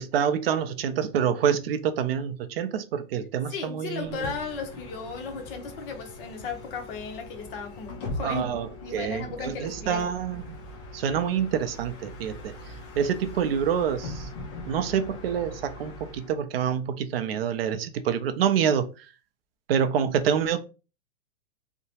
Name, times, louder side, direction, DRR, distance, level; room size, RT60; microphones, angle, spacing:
voice 1, 0.0-4.4 8.2-10.6 10.9-12.5 12.9-14.3 14.7-19.1 19.7-20.6, right 8 dB, 50° right, 0.5 m, -27 dB
voice 2, 3.5-8.5 8.8-10.0, left 5 dB, 45° left, 0.8 m, -35 dB
Bus, 4.0-16.4, left 1 dB, 20° left, 0.4 m, -41 dB
2.8 x 2.1 x 2.8 m
hypercardioid pair, 145°, 40 cm